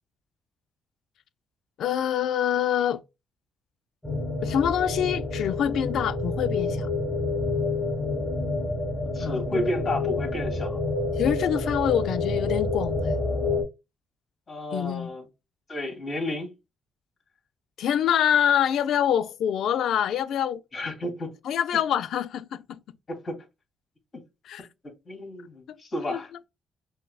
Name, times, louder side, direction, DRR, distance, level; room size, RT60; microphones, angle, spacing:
voice 1, 1.8-3.0 4.4-6.9 9.2-9.7 11.2-13.2 14.7-15.1 17.8-20.6 21.4-22.8 24.5-24.7 26.1-26.2, left 9 dB, 75° left, 0.3 m, -25 dB
sound 1, 4.0-13.6, left 3 dB, 10° left, 1.3 m, -28 dB
voice 2, 9.1-10.8 14.5-15.3 15.7-16.5 20.7-21.3 23.1-23.4 24.1-24.2 25.1-26.3, left 1 dB, 45° left, 2.0 m, -32 dB
5.6 x 2.1 x 2.3 m
cardioid pair, 90°, 0 cm